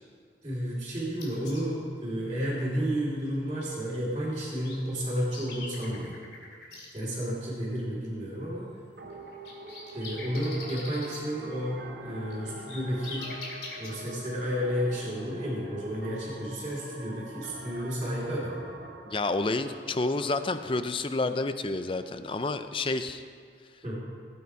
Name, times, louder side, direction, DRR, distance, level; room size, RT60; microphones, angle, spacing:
voice 1, 0.4-6.2 6.9-8.7 9.9-13.3 13.8-18.7 23.8-24.0, equal, 25° right, -11 dB, 3.0 m, -32 dB
sound 1, 1.2-1.6 4.3-4.4 4.6-6.9 9.1-11.2 12.1-13.9, left 3 dB, 75° left, 2.6 m, -42 dB
sound 2, 9.0-20.3, right 2 dB, 85° right, 2.1 m, -45 dB
voice 2, 19.1-23.2, left 3 dB, 30° left, 10 dB, 0.5 m, -29 dB
17.0 x 8.5 x 4.7 m, 2.1 s
head